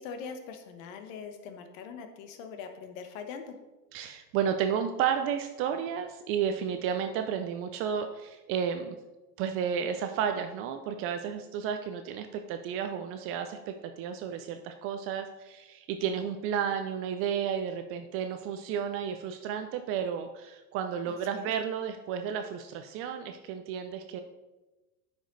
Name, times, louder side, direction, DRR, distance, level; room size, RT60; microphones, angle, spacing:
voice 1, 0.0-3.5 21.0-21.5, left 6 dB, 55° left, 7 dB, 1.2 m, -42 dB
voice 2, 3.9-9.0 9.4-24.2, right 8 dB, 30° right, 7 dB, 0.4 m, -32 dB
8.8 x 5.2 x 3.9 m, 1.1 s
hypercardioid pair, 110°, 48 cm